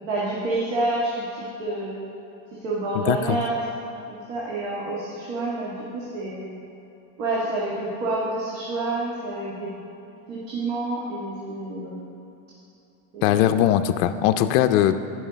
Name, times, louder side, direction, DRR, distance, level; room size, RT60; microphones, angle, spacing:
voice 1, 0.0-2.0 2.5-3.5 4.1-6.4 7.2-9.7 10.3-12.0 13.1-13.5, right 2 dB, 80° right, -5 dB, 1.7 m, -28 dB
voice 2, 2.9-3.4 13.2-15.0, left 11 dB, 60° left, 9 dB, 0.5 m, -20 dB
9.6 x 5.7 x 5.1 m, 2.8 s
supercardioid pair, 125°, 38 cm